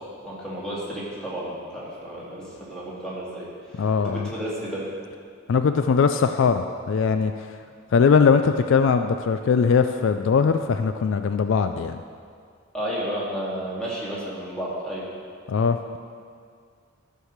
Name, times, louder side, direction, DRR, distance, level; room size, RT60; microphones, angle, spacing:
voice 1, 0.2-3.5 3.7-4.9 12.7-15.1, right 1 dB, 5° left, -7 dB, 2.3 m, -32 dB
voice 2, 3.8-4.3 5.5-7.6 7.9-12.0 15.5-16.0, left 5 dB, 60° left, 8 dB, 0.3 m, -21 dB
13.0 x 4.8 x 6.5 m, 2.1 s
head